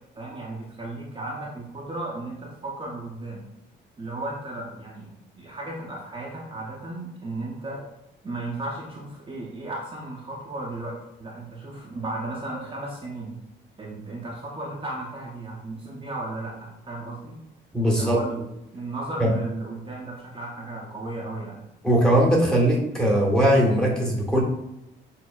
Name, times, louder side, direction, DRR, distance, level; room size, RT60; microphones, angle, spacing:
voice 1, 0.2-3.5 4.0-5.1 5.4-7.9 8.2-13.4 13.8-17.4 17.9-21.7, right 2 dB, 25° right, -5 dB, 0.8 m, -35 dB
voice 2, 17.7-18.2 19.2-19.3 21.8-24.4, equal, 5° left, -2 dB, 1.1 m, -20 dB
6.1 x 2.1 x 2.3 m, 0.86 s
cardioid pair, 90°, 20 cm